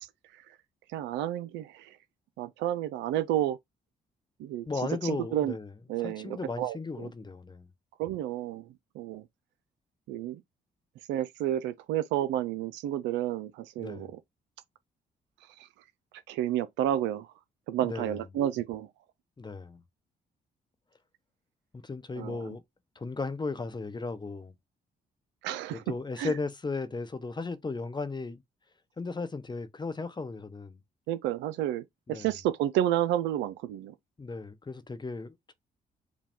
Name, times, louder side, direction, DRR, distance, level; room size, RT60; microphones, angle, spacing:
voice 1, 0.9-2.0 2.4-3.6 4.4-4.7 5.0-5.5 5.9-6.8 8.0-8.6 9.0-9.2 10.1-10.4 11.1-14.2 15.6-15.7 16.3-17.3 17.7-18.9 22.2-22.5 25.4-25.8 26.2-26.3 31.1-33.9, right 12 dB, 85° right, 0.4 m, -30 dB
voice 2, 4.7-5.7 6.0-7.7 13.8-14.1 17.8-18.2 19.4-19.8 21.8-22.6 23.0-24.5 25.7-28.4 29.0-30.8 32.1-32.3 34.2-35.5, left 3 dB, 25° left, 0.8 m, -36 dB
5.1 x 2.2 x 3.5 m
supercardioid pair, 60°, 18 cm